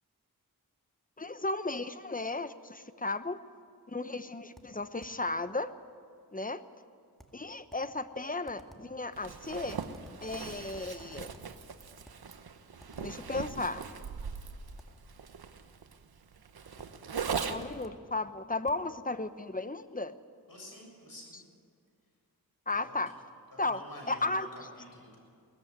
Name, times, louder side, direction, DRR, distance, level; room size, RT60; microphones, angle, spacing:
voice 1, 1.2-3.4 3.9-5.7 6.3-6.6 7.3-9.8 10.2-11.3 13.0-13.8 17.5-20.1 22.7-23.1 23.6-23.8 24.1-24.5, left 2 dB, 20° left, 12 dB, 1.0 m, -34 dB
sound 1, 4.6-5.3 7.2-8.0 8.5-9.0 9.7-10.3 10.7-11.6 12.0-12.3 12.8-13.3 14.8-15.1 16.8-17.1 17.6-18.1 18.7-18.9, equal, ahead, 2.1 m, -56 dB
Zipper (clothing), 9.1-17.8, right 6 dB, 80° right, 1.1 m, -40 dB
voice 2, 20.5-21.4 22.7-23.0 23.5-25.2, left 1 dB, 65° left, 0 dB, 7.2 m, -49 dB
19.5 x 14.5 x 9.5 m, 2.2 s
cardioid pair, 50°, 37 cm